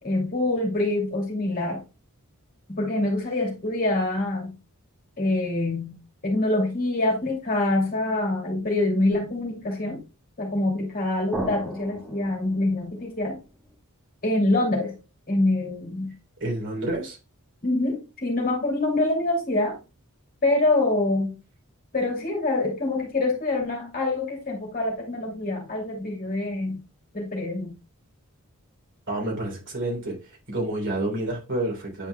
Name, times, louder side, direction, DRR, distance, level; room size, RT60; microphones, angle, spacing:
voice 1, 0.0-1.8 2.7-4.6 5.2-6.0 6.2-10.0 10.4-13.4 14.2-15.0 15.3-16.1 17.6-19.8 20.4-21.3 21.9-26.8 27.1-27.7, left 2 dB, 40° left, 2.6 m, -25 dB
sound 1, 11.3-13.7, equal, 5° right, 2.9 m, -36 dB
voice 2, 16.4-17.2 29.1-30.2 30.5-32.1, right 1 dB, 55° right, 3.3 m, -29 dB
9.9 x 4.8 x 2.2 m
head